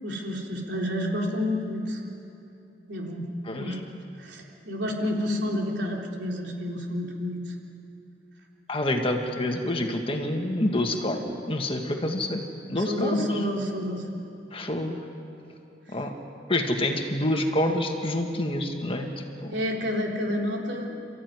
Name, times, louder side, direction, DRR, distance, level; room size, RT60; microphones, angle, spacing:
voice 1, 0.0-2.0 2.9-3.3 3.6-3.8 4.2-7.5 12.8-14.1 19.5-21.0, left 1 dB, 75° right, -1 dB, 3.7 m, -29 dB
voice 2, 3.5-3.8 8.7-12.4 12.7-13.4 14.5-15.0 15.9-16.1 16.5-19.1, left 1 dB, 30° left, 3 dB, 1.9 m, -27 dB
28.0 x 14.5 x 9.7 m, 2.9 s
head